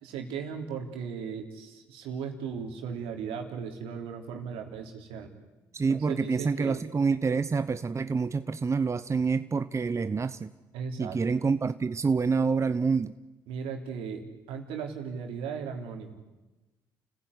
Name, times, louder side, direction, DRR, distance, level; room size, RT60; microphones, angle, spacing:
voice 1, 0.0-5.3 5.9-6.8 10.7-11.2 13.5-16.1, right 6 dB, 75° right, 4 dB, 3.4 m, -37 dB
voice 2, 5.7-10.5 11.0-13.1, right 5 dB, 30° right, 12 dB, 0.9 m, -27 dB
30.0 x 15.5 x 9.8 m, 1.1 s
hypercardioid pair, 55°, 10 cm